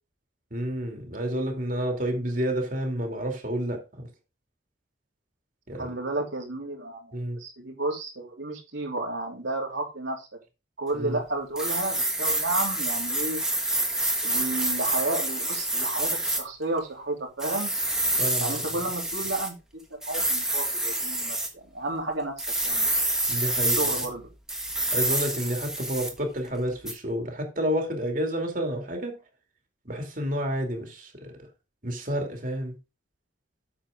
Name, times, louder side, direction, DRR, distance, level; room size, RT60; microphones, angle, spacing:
voice 1, 0.5-4.1 5.7-5.9 7.1-7.4 10.9-11.2 18.2-18.6 23.3-24.0 24.9-29.2 29.8-31.4 31.8-32.8, equal, 45° right, 2.5 m, -30 dB
voice 2, 5.8-10.3 10.8-13.4 14.2-17.7 18.4-19.5 19.9-22.3 22.6-22.9 23.6-24.2, right 2 dB, 75° right, 3.0 m, -32 dB
sound 1, 11.6-16.4 17.4-19.5 20.0-21.5 22.4-24.1 24.5-26.2 26.9-27.0, right 1 dB, 5° right, 1.5 m, -27 dB
8.9 x 7.3 x 3.7 m
head